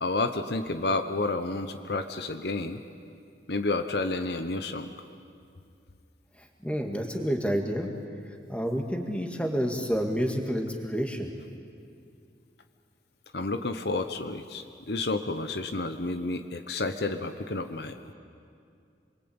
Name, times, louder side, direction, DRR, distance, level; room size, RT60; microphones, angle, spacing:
voice 1, 0.0-2.8 3.5-4.9 13.3-18.1, left 2 dB, 60° left, 8 dB, 1.0 m, -30 dB
voice 2, 6.6-7.9 8.5-11.3, equal, 5° left, 3 dB, 2.1 m, -29 dB
27.0 x 22.5 x 8.9 m, 2.4 s
head